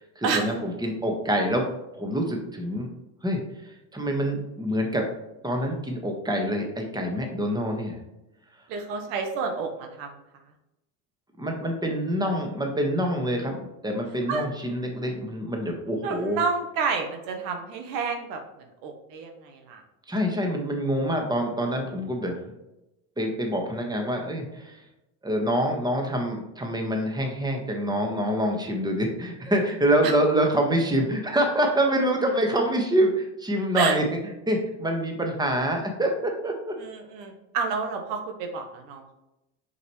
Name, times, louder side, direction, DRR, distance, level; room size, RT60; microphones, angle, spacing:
voice 1, 0.1-1.7 1.9-2.9 3.2-3.4 3.9-5.1 5.4-8.0 11.4-16.4 20.1-22.4 23.2-24.8 25.2-34.0 34.5-36.7, equal, 10° right, 2 dB, 1.4 m, -26 dB
voice 2, 8.7-10.1 14.3-14.4 16.0-18.4 18.8-19.8 30.0-30.1 33.7-34.0 36.8-39.1, right 5 dB, 80° right, 4 dB, 1.2 m, -29 dB
6.4 x 5.2 x 3.1 m, 0.93 s
supercardioid pair, 80°, 49 cm